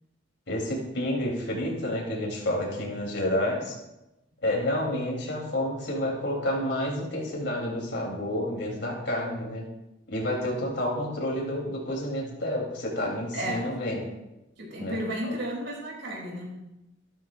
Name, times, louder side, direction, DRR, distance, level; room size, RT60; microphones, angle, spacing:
voice 1, 0.5-3.8 4.4-9.6 10.1-14.1 14.8-15.0, left 1 dB, 65° left, -2 dB, 3.6 m, -29 dB
voice 2, 13.3-13.7 14.6-16.6, right 1 dB, 75° right, -2 dB, 3.6 m, -33 dB
14.0 x 12.0 x 2.6 m, 0.95 s
head